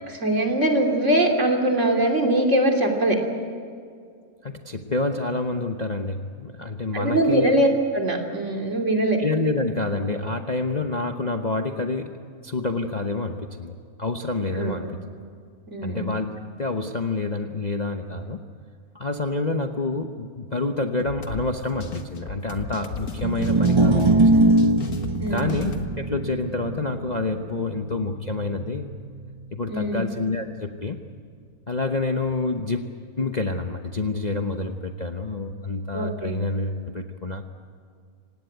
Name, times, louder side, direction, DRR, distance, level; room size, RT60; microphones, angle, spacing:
voice 1, 0.1-3.2 6.9-9.2 14.5-14.7 15.7-16.1 25.2-25.6 29.7-30.1 35.9-36.4, right 1 dB, 50° right, 2 dB, 3.2 m, -22 dB
voice 2, 4.4-7.5 9.2-12.1 12.4-13.7 14.0-15.0 15.8-16.3 16.6-18.4 18.9-24.1 24.4-24.5 25.3-28.9 29.5-31.0 31.7-32.8 33.2-37.4, left 3 dB, 30° left, 4 dB, 0.9 m, -28 dB
sound 1, 21.0-25.9, left 4 dB, 70° left, 1.9 m, -35 dB
sound 2, 23.1-29.5, right 2 dB, 25° right, 0.7 m, -22 dB
25.5 x 18.5 x 9.2 m, 2.2 s
omnidirectional pair, 1.6 m